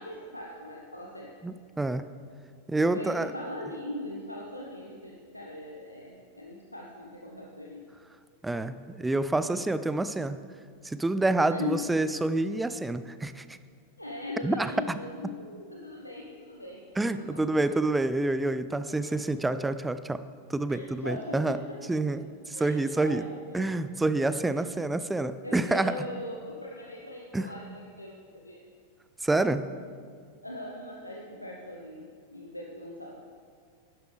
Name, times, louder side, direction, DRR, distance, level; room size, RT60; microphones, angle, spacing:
voice 1, 0.0-1.3 2.8-7.8 11.5-11.9 14.0-17.7 19.0-19.2 20.7-21.8 22.1-22.2 22.5-23.7 24.5-24.7 25.4-28.7 30.4-33.2, left 2 dB, 85° left, -1 dB, 0.8 m, -40 dB
voice 2, 1.4-2.0 2.7-3.3 8.4-10.4 10.8-13.4 14.4-15.0 17.0-20.2 20.5-21.6 21.9-23.2 23.5-25.9 27.3-27.5 29.2-29.6, right 2 dB, 10° right, 13 dB, 0.4 m, -28 dB
11.5 x 11.0 x 3.3 m, 2.1 s
figure-of-eight pair, 90°, 0 cm